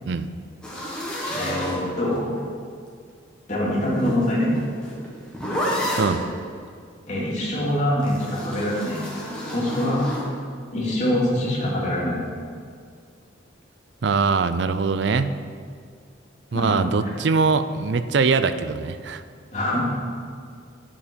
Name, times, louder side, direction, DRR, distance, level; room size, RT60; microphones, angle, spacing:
sound 1, 0.6-2.4 3.6-6.3 8.0-10.3, equal, 5° left, 1.6 m, -30 dB
voice 1, 1.3-2.3 3.5-4.5 7.1-9.0 9.5-10.0 10.7-12.2 16.5-17.2 19.5-19.8, left 1 dB, 35° left, -6 dB, 2.5 m, -24 dB
voice 2, 14.0-15.4 16.5-19.2, right 4 dB, 60° right, 11 dB, 0.4 m, -22 dB
10.0 x 7.0 x 5.2 m, 2.2 s
head